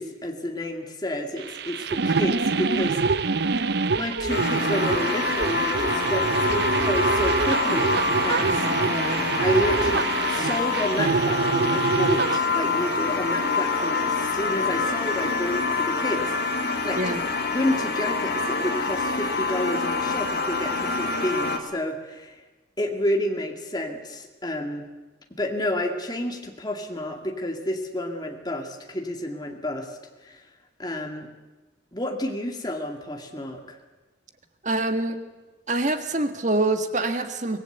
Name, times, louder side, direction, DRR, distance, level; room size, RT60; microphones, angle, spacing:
voice 1, 0.0-3.4 4.0-8.6 9.4-17.2 17.5-22.4 22.8-24.9 25.4-30.0 30.2-30.4 30.8-31.3 31.9-33.8, left 1 dB, 20° left, 3 dB, 2.2 m, -30 dB
sound 1, 1.4-12.4, right 4 dB, 60° right, 0.7 m, -25 dB
sound 2, 4.3-21.6, left 3 dB, 55° left, 2.4 m, -26 dB
voice 2, 8.5-9.2 17.0-17.2 34.6-35.2 35.7-37.6, right 2 dB, 40° right, 8 dB, 1.5 m, -26 dB
25.0 x 18.5 x 8.1 m, 1.2 s
head